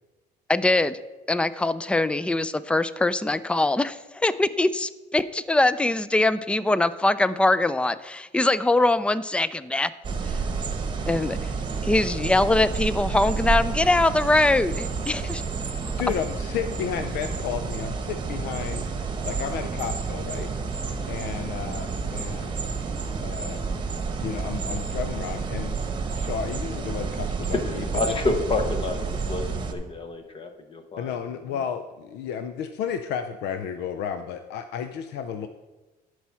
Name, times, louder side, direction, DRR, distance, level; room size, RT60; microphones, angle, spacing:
voice 1, 0.5-1.0 1.3-9.9 10.2-10.4 11.1-11.4 11.8-15.4, left 2 dB, 5° left, 16 dB, 0.4 m, -22 dB
sound 1, 10.0-29.7, right 4 dB, 30° right, 1.1 m, -30 dB
voice 2, 16.0-20.5 21.1-22.6 23.2-23.6 24.2-25.7 26.1-28.2 31.0-35.5, left 8 dB, 80° left, 9 dB, 0.5 m, -32 dB
voice 3, 27.9-29.0 29.3-31.2 31.4-31.5, left 3 dB, 30° left, 6 dB, 0.9 m, -28 dB
11.5 x 4.7 x 5.6 m, 1.2 s
cardioid pair, 110°, 17 cm